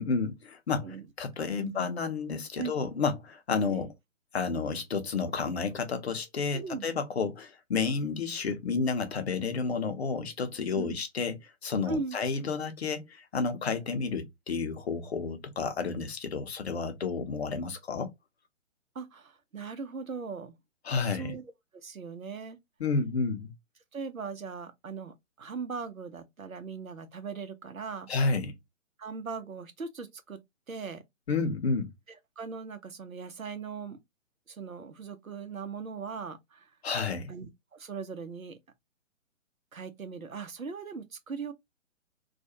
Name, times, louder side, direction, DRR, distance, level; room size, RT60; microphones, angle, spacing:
voice 1, 0.0-3.9 4.3-11.3 11.6-18.1 20.8-21.3 22.8-23.5 28.1-28.5 31.3-31.9 36.8-37.3, left 4 dB, 50° left, 0.6 m, -31 dB
voice 2, 1.5-1.9 2.6-2.7 3.7-3.9 6.5-6.9 10.7-10.9 11.9-12.2 18.9-20.6 21.0-21.4 21.8-22.6 23.9-28.1 29.0-30.4 30.7-31.0 32.4-34.0 34.5-36.7 37.3-38.6 39.7-41.5, right 5 dB, 85° right, 0.8 m, -39 dB
2.4 x 2.2 x 2.7 m
figure-of-eight pair, 130°, 40 cm